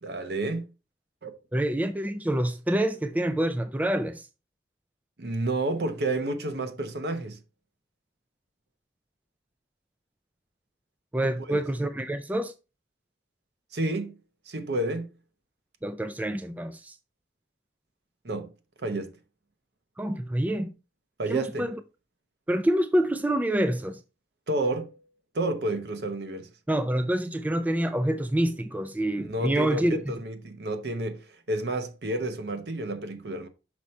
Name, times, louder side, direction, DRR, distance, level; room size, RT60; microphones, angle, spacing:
voice 1, 0.0-0.7 1.2-1.3 5.2-7.4 11.5-11.6 13.7-14.2 14.5-15.1 18.2-18.5 18.8-19.1 21.2-21.7 24.5-25.0 25.3-26.5 29.2-33.5, right 2 dB, 70° right, 0.9 m, -30 dB
voice 2, 1.5-4.3 11.1-12.5 15.8-17.0 20.0-20.7 21.3-21.8 22.5-24.0 26.7-30.0, right 1 dB, 10° right, 0.3 m, -27 dB
6.2 x 4.4 x 4.2 m
head